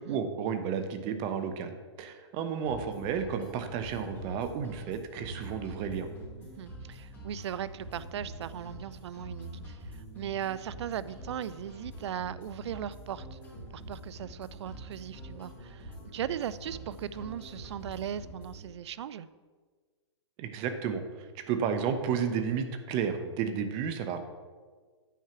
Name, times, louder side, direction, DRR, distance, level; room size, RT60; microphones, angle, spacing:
voice 1, 0.1-6.1 20.4-21.0 21.5-24.2, right 7 dB, 35° right, 8 dB, 0.8 m, -32 dB
sound 1, 2.7-18.7, right 1 dB, 15° left, 2.8 m, -45 dB
voice 2, 6.4-13.4 13.7-19.3, right 9 dB, 65° right, 16 dB, 0.4 m, -38 dB
9.2 x 4.6 x 5.8 m, 1.5 s
hypercardioid pair, 130°, 15 cm